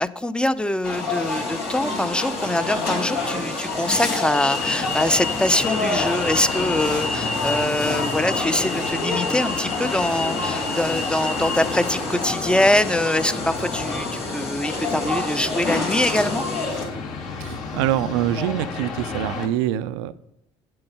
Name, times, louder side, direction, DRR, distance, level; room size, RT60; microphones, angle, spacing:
voice 1, 0.0-16.4, left 1 dB, 5° left, 13 dB, 0.6 m, -23 dB
sound 1, 0.8-16.8, left 3 dB, 80° left, 4.0 m, -27 dB
sound 2, 1.2-16.7, left 3 dB, 45° left, 1.6 m, -42 dB
sound 3, 4.6-19.5, left 4 dB, 65° left, 2.4 m, -32 dB
voice 2, 17.4-20.2, right 12 dB, 80° right, 15 dB, 0.5 m, -25 dB
8.9 x 7.7 x 5.6 m, 0.78 s
hypercardioid pair, 70°, 14 cm